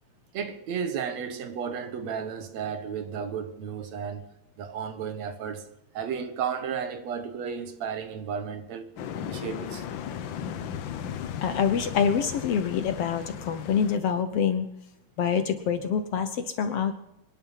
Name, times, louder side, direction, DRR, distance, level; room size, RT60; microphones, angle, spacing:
voice 1, 0.3-4.2 4.6-5.7 5.9-8.9 9.2-9.9, right 7 dB, 65° right, 2.4 m, -33 dB
sound 1, 9.0-14.0, left 8 dB, 80° left, 1.0 m, -36 dB
voice 2, 11.4-14.7 15.2-16.9, left 7 dB, 65° left, 1.7 m, -26 dB
25.0 x 10.5 x 5.6 m
omnidirectional pair, 3.4 m